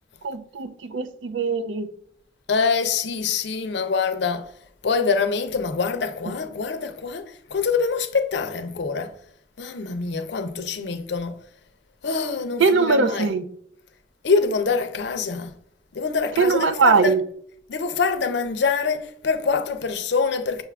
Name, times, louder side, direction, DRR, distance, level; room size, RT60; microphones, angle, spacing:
voice 1, 0.2-1.9 12.6-13.5 16.4-17.2, right 4 dB, 80° right, 0.5 m, -21 dB
voice 2, 2.5-4.5 4.8-9.1 9.6-11.4 12.0-13.3 14.2-15.5 15.9-17.1 17.7-20.6, left 5 dB, 65° left, 0.5 m, -25 dB
6.3 x 2.4 x 3.3 m
head